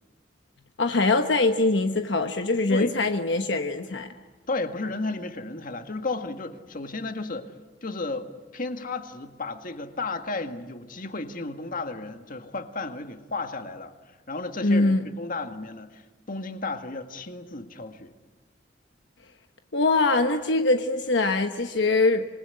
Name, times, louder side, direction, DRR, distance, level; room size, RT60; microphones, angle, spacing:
voice 1, 0.8-4.1 14.6-15.0 19.7-22.3, left 3 dB, 75° left, 6 dB, 1.1 m, -23 dB
voice 2, 4.5-7.5 7.8-8.3 8.5-18.1, left 3 dB, 50° left, 7 dB, 1.8 m, -33 dB
27.0 x 20.5 x 9.8 m, 1.3 s
head